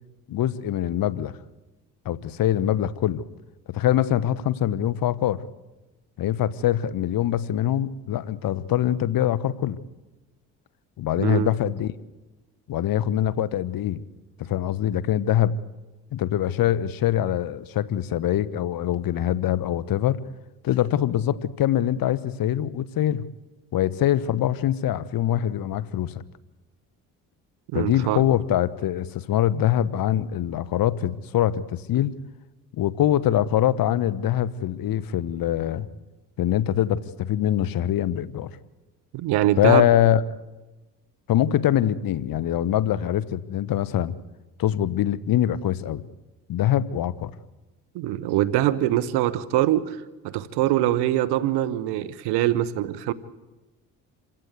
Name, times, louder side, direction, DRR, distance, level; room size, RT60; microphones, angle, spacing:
voice 1, 0.3-1.4 2.0-3.3 3.7-5.4 6.2-9.8 11.0-11.9 12.7-14.0 14.4-15.6 16.1-20.2 20.6-23.3 23.7-26.1 27.7-32.1 32.7-35.9 36.4-38.5 39.6-40.2 41.3-44.1 44.6-46.0 46.5-47.3, left 11 dB, 60° left, 19 dB, 1.1 m, -23 dB
voice 2, 11.2-11.5 27.7-28.2 39.1-39.9 47.9-53.1, right 13 dB, 80° right, 17 dB, 1.2 m, -23 dB
26.5 x 16.5 x 8.2 m, 1.1 s
supercardioid pair, 65°, 39 cm